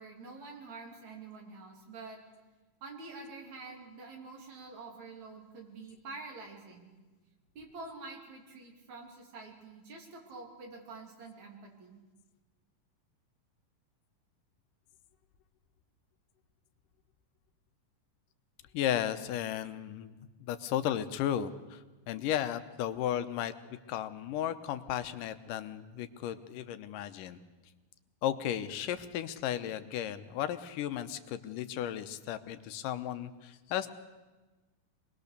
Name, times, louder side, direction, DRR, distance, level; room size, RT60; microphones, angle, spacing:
voice 1, 0.0-2.2 2.8-6.9 7.6-12.0, right 3 dB, 55° right, 1 dB, 4.2 m, -47 dB
voice 2, 18.7-23.5 23.9-27.4 28.2-33.9, left 11 dB, 75° left, 10 dB, 2.4 m, -34 dB
24.5 x 20.0 x 6.7 m, 1.2 s
omnidirectional pair, 3.9 m